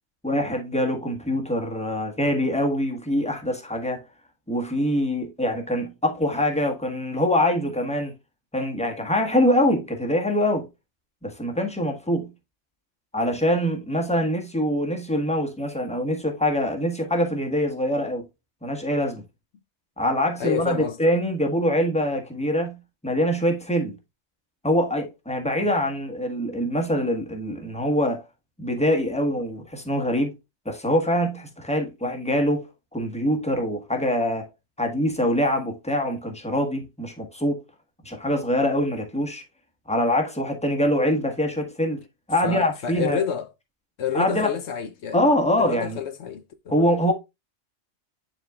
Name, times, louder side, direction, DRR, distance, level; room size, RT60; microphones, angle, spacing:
voice 1, 0.2-4.0 4.5-8.1 8.5-10.7 11.2-12.3 13.1-18.2 18.6-19.2 20.0-24.0 24.6-28.2 28.6-30.3 30.6-34.5 34.8-37.6 38.0-39.4 39.9-42.0 42.3-43.2 44.1-44.5 45.1-46.0 46.7-47.1, equal, 5° left, 1.4 m, -24 dB
voice 2, 20.4-21.0 42.4-43.5 44.0-45.2 45.6-46.7, left 7 dB, 70° left, 1.0 m, -29 dB
10.0 x 4.4 x 2.3 m
omnidirectional pair, 1.3 m